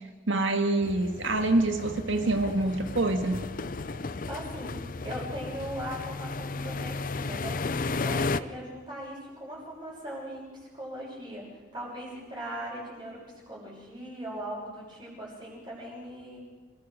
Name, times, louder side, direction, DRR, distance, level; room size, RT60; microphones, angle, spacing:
voice 1, 0.3-3.4, right 2 dB, 80° right, 6 dB, 2.0 m, -26 dB
sound 1, 0.8-8.4, left 3 dB, 45° left, 0.6 m, -34 dB
voice 2, 4.3-4.8 5.0-7.6 8.0-11.5 11.7-13.2 13.5-16.4, equal, 25° right, -4 dB, 6.0 m, -39 dB
27.5 x 17.5 x 6.5 m, 1.4 s
head